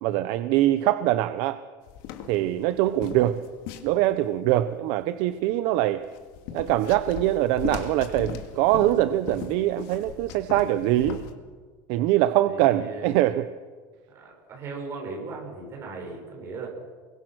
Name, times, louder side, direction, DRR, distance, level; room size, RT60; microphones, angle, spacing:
voice 1, 0.0-1.6 2.3-3.4 3.8-6.0 6.5-11.2 11.9-13.5, right 14 dB, 55° right, 12 dB, 0.9 m, -23 dB
sound 1, 1.9-4.4 6.0-11.3, left 9 dB, 55° left, 2.3 m, -38 dB
voice 2, 2.3-2.6 12.4-13.2 14.1-16.7, right 3 dB, 30° right, 0 dB, 7.2 m, -38 dB
29.5 x 23.0 x 6.3 m, 1.5 s
cardioid pair, 175°, 9 cm